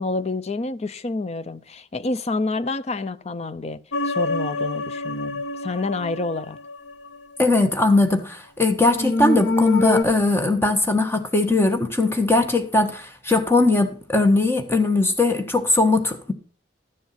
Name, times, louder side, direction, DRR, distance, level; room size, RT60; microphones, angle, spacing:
voice 1, 0.0-6.6, left 3 dB, 35° left, 0.6 m, -28 dB
sound 1, 3.9-7.2 8.9-10.0, left 3 dB, 80° left, 1.1 m, -25 dB
voice 2, 7.4-16.3, left 2 dB, 15° left, 1.4 m, -20 dB
12.0 x 7.1 x 5.8 m
head